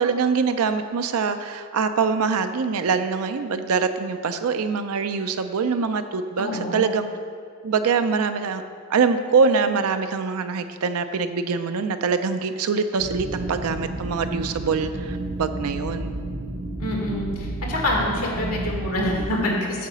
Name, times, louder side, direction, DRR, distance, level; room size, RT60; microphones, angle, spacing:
voice 1, 0.0-7.1 7.6-8.6 8.9-16.2, right 5 dB, 75° right, 9 dB, 0.5 m, -24 dB
voice 2, 6.4-6.9 16.8-19.9, left 1 dB, 85° left, -1 dB, 1.8 m, -26 dB
sound 1, 13.0-19.2, right 1 dB, 35° right, 0.7 m, -31 dB
8.6 x 4.1 x 6.7 m, 2.1 s
head